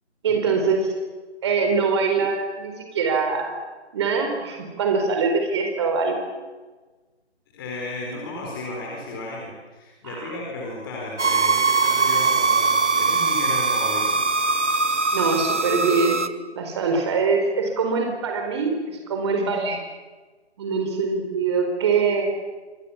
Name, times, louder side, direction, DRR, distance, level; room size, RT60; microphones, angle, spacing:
voice 1, 0.2-0.9 1.4-3.5 3.9-6.2 10.0-10.4 15.1-16.2 16.5-19.8 20.6-22.3, right 4 dB, 25° right, 3 dB, 4.4 m, -23 dB
voice 2, 7.5-14.2, left 2 dB, 20° left, -1 dB, 4.5 m, -34 dB
sound 1, 11.2-16.3, right 4 dB, 90° right, 1.8 m, -21 dB
26.5 x 26.0 x 7.3 m, 1.3 s
figure-of-eight pair, 160°, 34 cm